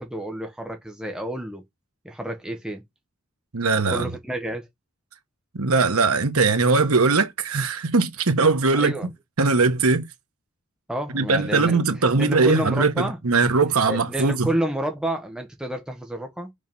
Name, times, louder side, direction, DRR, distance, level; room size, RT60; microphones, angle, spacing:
voice 1, 0.0-1.6 2.0-2.8 3.9-4.7 8.7-9.1 10.9-11.8 12.2-13.5 13.9-16.5, right 1 dB, 5° right, 1.3 m, -29 dB
voice 2, 3.5-4.1 5.5-9.1 9.4-10.1 11.1-14.5, right 4 dB, 85° right, 1.3 m, -20 dB
5.2 x 4.0 x 5.4 m
head